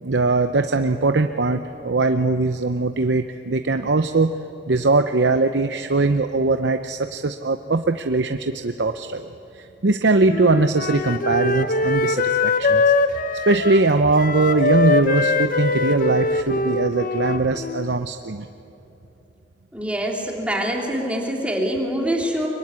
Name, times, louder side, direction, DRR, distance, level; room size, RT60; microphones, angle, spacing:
voice 1, 0.0-4.3 4.7-9.3 9.6-12.8 13.5-18.5, right 3 dB, 75° right, 8 dB, 0.8 m, -21 dB
Wind instrument woodwind instrument, 10.3-18.0, left 3 dB, 50° left, 0.9 m, -22 dB
voice 2, 19.7-22.5, equal, 5° right, 0 dB, 3.2 m, -24 dB
24.5 x 22.5 x 9.7 m, 2.9 s
head